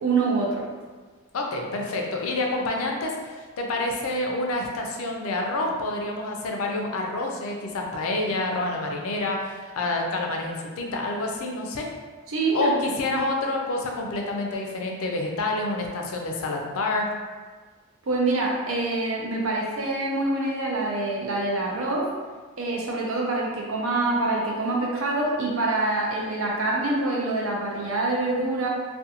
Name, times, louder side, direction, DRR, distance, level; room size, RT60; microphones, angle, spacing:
voice 1, 0.0-0.7 12.3-12.7 18.0-22.1 22.6-28.7, right 2 dB, 75° right, -2 dB, 0.6 m, -25 dB
voice 2, 1.3-11.9 12.5-17.1, left 2 dB, 80° left, 1 dB, 0.4 m, -28 dB
2.5 x 2.2 x 2.8 m, 1.4 s
head